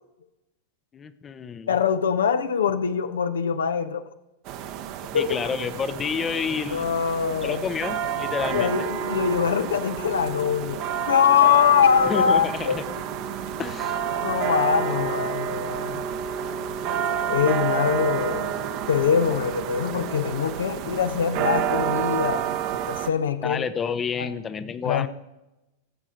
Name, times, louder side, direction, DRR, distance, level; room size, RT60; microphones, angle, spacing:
voice 1, 0.9-1.7 5.1-6.9 7.4-8.9 12.1-12.8 13.6-14.0 16.9-17.2 23.4-25.1, left 6 dB, 20° left, 12 dB, 0.7 m, -29 dB
voice 2, 1.7-4.0 5.1-5.4 6.7-7.6 8.5-12.8 14.2-16.0 17.3-18.5 18.9-23.7 24.2-24.3 24.8-25.1, left 7 dB, 65° left, 11 dB, 0.7 m, -23 dB
sound 1, 4.5-23.1, right 8 dB, 40° right, 0.9 m, -29 dB
17.5 x 7.5 x 4.9 m, 0.95 s
figure-of-eight pair, 90°, 0 cm